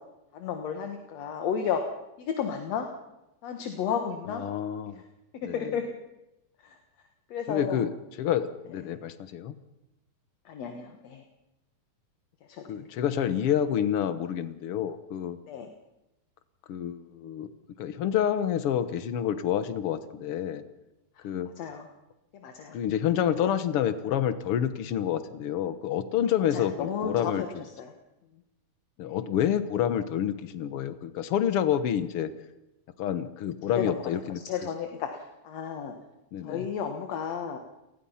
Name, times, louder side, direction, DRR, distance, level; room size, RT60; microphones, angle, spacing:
voice 1, 0.3-1.8 2.2-2.9 3.4-4.4 5.4-5.8 6.6-6.8 7.3-7.8 10.5-11.2 12.5-12.9 15.5-15.7 21.6-21.9 22.4-22.8 26.5-27.5 27.8-27.9 33.8-34.0 34.5-35.9 36.4-37.6, left 7 dB, 55° left, 5 dB, 2.3 m, -32 dB
voice 2, 4.3-5.0 5.4-5.8 7.5-9.6 12.7-15.4 16.7-17.5 17.8-20.6 21.2-21.5 22.7-27.4 29.0-32.3 33.0-34.4 36.3-36.7, left 9 dB, 75° left, 12 dB, 1.3 m, -28 dB
29.0 x 19.5 x 5.7 m, 0.95 s
omnidirectional pair, 4.2 m